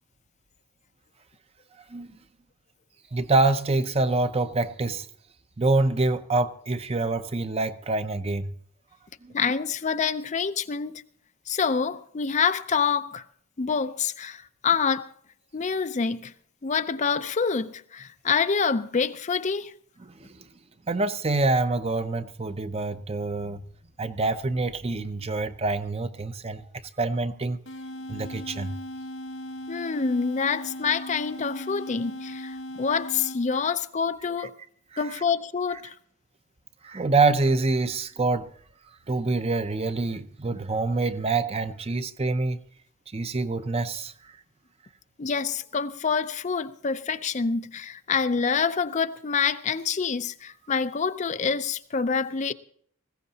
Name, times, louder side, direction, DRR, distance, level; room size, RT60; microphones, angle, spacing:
voice 1, 3.1-5.1 5.6-8.5 9.2-9.3 20.1-20.3 20.9-23.6 24.0-26.6 27.0-27.6 28.1-28.8 36.8-38.5 39.1-42.6 43.1-44.1, right 3 dB, 25° right, 0.6 m, -26 dB
voice 2, 9.3-11.0 11.5-13.2 13.6-15.1 15.5-16.3 16.6-19.7 29.7-34.5 35.0-36.0 45.2-52.5, left 5 dB, 35° left, 0.4 m, -27 dB
sound 1, 27.6-33.7, left 1 dB, 65° left, 1.5 m, -38 dB
19.5 x 16.0 x 2.8 m
head